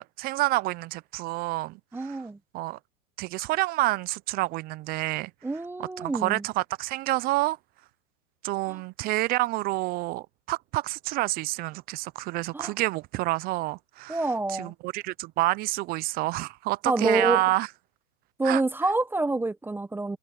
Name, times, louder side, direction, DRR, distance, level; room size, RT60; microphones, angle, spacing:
voice 1, 0.0-2.2 2.5-2.8 3.2-5.3 6.0-7.6 8.4-14.2 14.5-17.7 18.4-18.6, right 19 dB, 20° right, 0.7 m, -28 dB
voice 2, 1.9-2.4 5.4-6.4 8.7-8.8 12.5-12.7 14.1-14.7 16.8-17.4 18.4-20.2, right 2 dB, 5° right, 1.1 m, -27 dB
hypercardioid pair, 135°, 46 cm